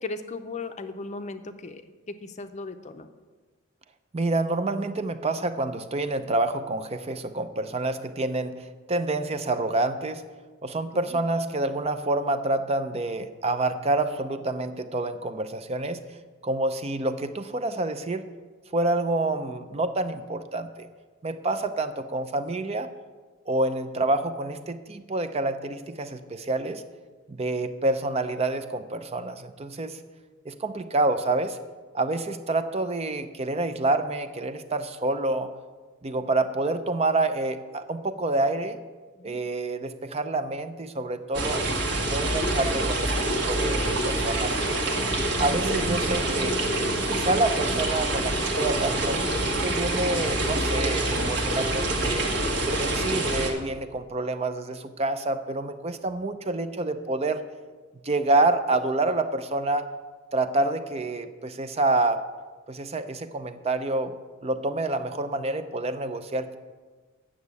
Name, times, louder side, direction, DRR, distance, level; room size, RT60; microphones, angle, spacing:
voice 1, 0.0-3.1 10.9-11.2 39.2-39.4, left 3 dB, 35° left, 8 dB, 0.6 m, -37 dB
voice 2, 4.1-10.3 10.6-16.0 16.4-18.3 18.7-20.9 21.2-22.9 23.5-26.8 27.3-30.0 30.5-31.6 31.9-35.5 36.0-38.8 39.2-41.6 42.0-44.5 44.8-45.0 45.4-46.6 47.1-49.3 49.6-52.3 52.7-57.4 58.0-59.9 60.3-62.2 62.7-64.2 64.4-66.6, right 2 dB, 30° right, 10 dB, 0.5 m, -27 dB
sound 1, 41.3-53.5, right 1 dB, 60° right, 1.6 m, -26 dB
9.0 x 6.4 x 8.1 m, 1.3 s
head